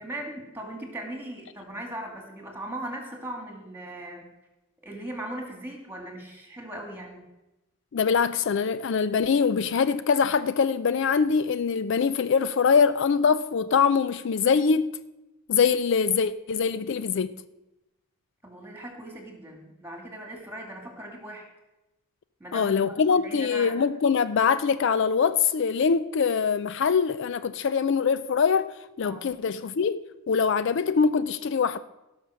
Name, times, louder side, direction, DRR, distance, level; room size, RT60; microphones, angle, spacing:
voice 1, 0.0-4.3 4.8-7.3 18.4-21.5 22.4-23.8 29.0-29.3, right 1 dB, 10° right, 2.2 m, -39 dB
voice 2, 7.9-14.9 15.5-17.3 22.5-31.8, left 6 dB, 55° left, 0.4 m, -23 dB
17.0 x 5.9 x 6.3 m
head